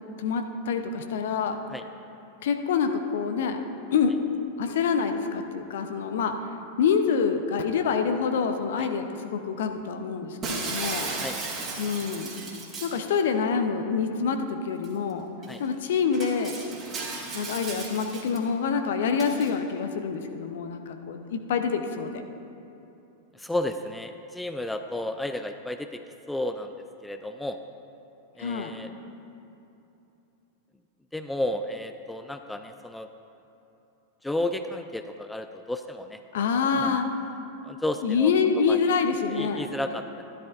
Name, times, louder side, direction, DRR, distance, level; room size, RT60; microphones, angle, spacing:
voice 1, 0.2-1.6 2.4-3.6 3.9-4.1 4.6-6.3 6.8-11.1 11.8-12.4 12.8-15.2 15.6-16.5 17.3-22.2 28.4-28.8 36.3-37.1 38.0-39.8, left 6 dB, 60° left, 6 dB, 0.7 m, -26 dB
Shatter, 10.4-13.0 14.8-14.9 15.4-15.5 16.1-18.4 19.2-19.5, right 3 dB, 25° right, 1.9 m, -35 dB
voice 2, 23.3-26.0 26.3-26.7 27.0-27.6 28.4-28.9 31.1-33.1 34.2-36.2 36.6-36.9 37.6-38.3 38.7-38.8 39.3-40.2, left 1 dB, 5° left, 7 dB, 0.4 m, -32 dB
12.5 x 12.0 x 2.6 m, 2.9 s
figure-of-eight pair, 90°, 0 cm